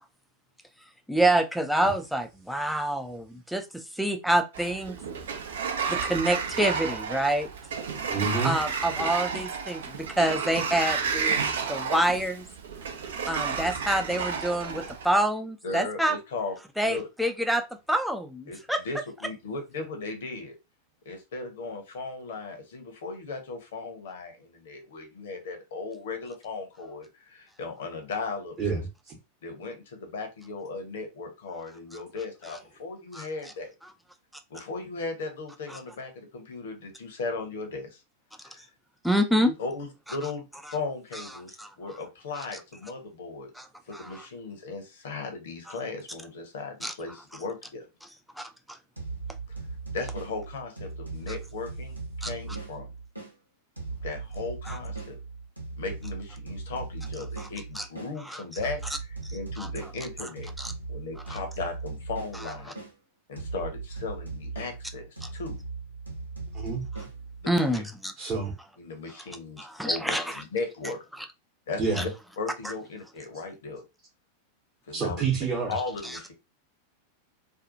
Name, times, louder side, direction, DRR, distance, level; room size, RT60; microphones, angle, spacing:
voice 1, 1.1-3.6 4.0-5.0 5.9-7.5 8.4-11.4 11.7-12.5 13.3-16.2 16.8-18.8 33.1-33.3 39.0-39.5 41.1-41.2 41.6-41.7 43.6-43.7 43.9-44.2 46.8-46.9 48.4-48.5 52.2-52.3 54.7-54.8 57.4-57.5 57.8-57.9 58.3-58.4 59.6-59.7 60.6-60.7 61.3-61.4 67.5-68.1 69.6-70.4 72.0-72.1, right 1 dB, ahead, 0.3 m, -27 dB
Sliding door, 4.5-15.1, right 6 dB, 60° right, 0.5 m, -31 dB
voice 2, 8.1-8.5 28.6-28.8 66.5-66.8 68.2-68.5 71.8-72.0 74.9-75.7, right 5 dB, 30° right, 0.9 m, -28 dB
voice 3, 15.6-16.6 16.8-17.1 18.5-20.6 21.0-28.8 29.4-33.7 34.5-38.0 38.4-38.7 39.5-43.5 43.9-47.9 49.5-49.6 49.9-52.9 54.0-55.1 55.8-60.5 60.9-62.7 63.3-65.6 67.4-67.8 68.8-71.0 71.7-72.1 72.4-73.8 74.9-75.2 75.7-76.3, left 3 dB, 60° left, 0.8 m, -37 dB
sound 1, 49.0-53.3 53.8-58.1 58.6-62.9 63.4-67.7, right 4 dB, 85° right, 0.9 m, -38 dB
2.6 x 2.3 x 2.5 m
figure-of-eight pair, 90°, 0 cm